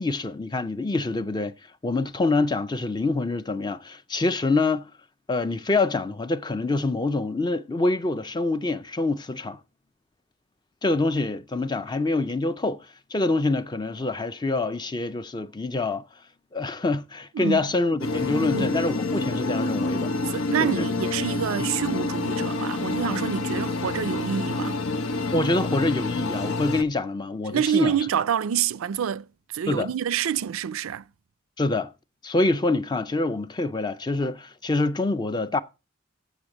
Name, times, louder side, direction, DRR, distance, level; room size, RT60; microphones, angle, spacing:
voice 1, 0.0-1.5 1.8-4.9 5.3-9.6 10.8-16.0 16.5-20.1 20.6-20.8 21.6-21.7 25.3-28.0 29.7-29.9 31.6-31.9 32.2-35.6, left 2 dB, 20° left, 0.5 m, -26 dB
sound 1, 18.0-26.8, left 2 dB, 90° left, 0.8 m, -28 dB
voice 2, 18.4-18.8 20.3-24.8 27.5-29.3 29.5-31.0, right 8 dB, 90° right, 0.4 m, -27 dB
8.0 x 7.0 x 6.0 m
head